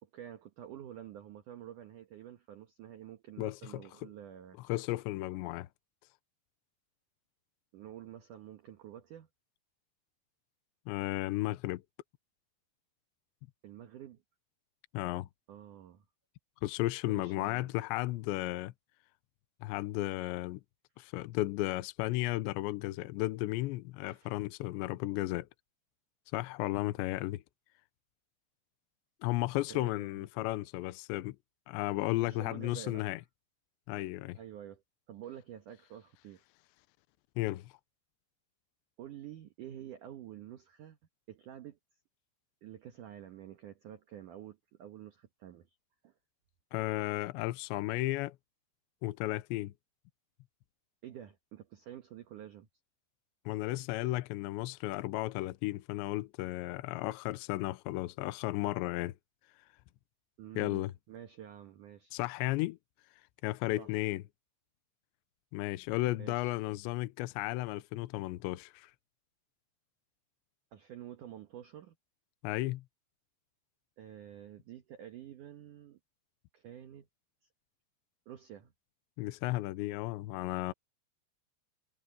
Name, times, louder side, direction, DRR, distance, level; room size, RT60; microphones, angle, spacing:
voice 1, 0.0-4.6 7.7-9.3 13.6-14.2 15.5-16.0 17.0-17.7 24.0-24.3 29.7-30.3 32.2-33.0 34.3-34.8 35.1-36.4 39.0-41.0 41.3-41.8 42.6-45.7 46.0-46.1 51.0-52.7 60.4-62.2 63.8-64.1 66.2-66.6 70.7-72.0 74.0-76.0 76.5-77.1 78.3-78.7, right 11 dB, 70° right, 1.9 m, -49 dB
voice 2, 3.4-4.1 4.7-5.7 10.9-11.8 14.9-15.3 16.6-18.7 19.6-20.6 21.0-25.5 26.3-27.4 29.2-31.4 31.7-33.2 33.9-34.4 37.4-37.7 46.7-48.4 49.0-49.7 53.5-59.1 60.6-60.9 62.1-62.8 63.4-64.2 65.5-68.9 72.4-72.8 79.2-80.7, left 18 dB, 85° left, 2.9 m, -34 dB
omnidirectional pair, 5.3 m